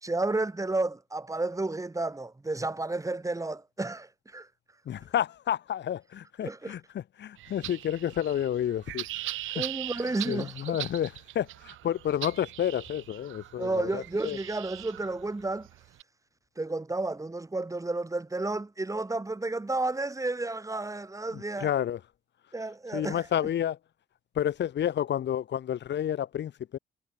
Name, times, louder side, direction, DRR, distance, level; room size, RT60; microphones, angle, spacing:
voice 1, 0.0-4.5 6.4-6.8 9.2-10.8 13.6-15.7 16.6-21.7 22.5-23.3, right 2 dB, 15° right, 3.7 m, -32 dB
voice 2, 4.8-6.8 7.2-9.0 9.5-9.6 10.2-11.1 11.3-14.4 21.3-22.0 22.9-23.8 24.3-26.8, left 10 dB, 60° left, 1.7 m, -30 dB
sound 1, 7.4-16.0, right 16 dB, 90° right, 2.5 m, -41 dB
cardioid pair, 90°, 20 cm